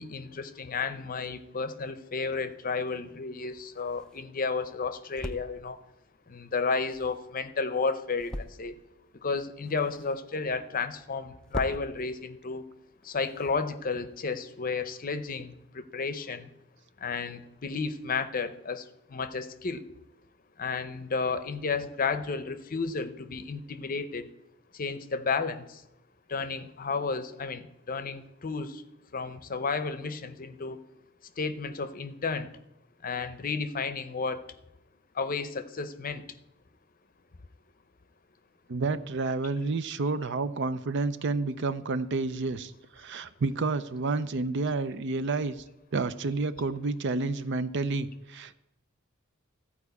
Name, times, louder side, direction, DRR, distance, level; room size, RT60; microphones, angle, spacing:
voice 1, 0.0-5.8 6.3-8.7 9.2-12.6 13.0-16.5 17.0-18.8 19.1-19.8 20.6-24.3 24.8-25.8 26.3-28.8 29.1-30.8 31.4-32.5 33.0-34.4 35.2-36.2, left 4 dB, 40° left, 12 dB, 0.7 m, -32 dB
sound 1, 3.0-14.2, left 1 dB, 5° left, 0.4 m, -45 dB
voice 2, 38.7-45.5 45.9-48.5, right 3 dB, 60° right, 13 dB, 0.5 m, -30 dB
14.0 x 4.8 x 8.2 m, 0.89 s
head